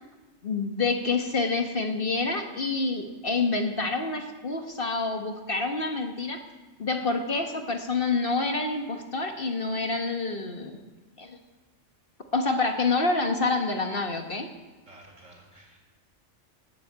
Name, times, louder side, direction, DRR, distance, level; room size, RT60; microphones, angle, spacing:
voice 1, 0.4-6.4 6.8-10.8 11.2-11.4 12.3-14.5, left 3 dB, 45° left, 4 dB, 1.5 m, -27 dB
voice 2, 14.8-15.8, right 1 dB, 70° right, 0 dB, 4.5 m, -52 dB
20.0 x 7.7 x 8.1 m, 1.2 s
omnidirectional pair, 1.3 m